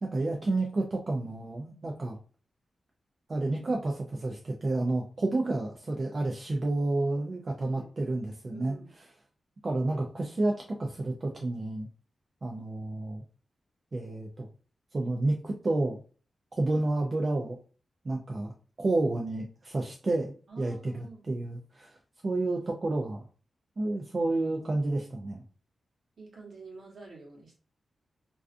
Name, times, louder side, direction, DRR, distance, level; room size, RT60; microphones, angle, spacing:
voice 1, 0.0-2.2 3.3-9.0 9.6-11.9 12.4-13.2 13.9-14.5 14.9-16.0 16.5-17.6 18.0-18.5 18.8-22.0 22.2-23.2 23.8-25.4, right 2 dB, 35° right, 0 dB, 0.3 m, -30 dB
voice 2, 7.6-8.2 8.5-8.9 20.5-21.2 26.2-27.6, right 3 dB, 60° right, -2 dB, 1.0 m, -48 dB
2.3 x 2.3 x 2.4 m, 0.39 s
wide cardioid pair, 125°, 0 cm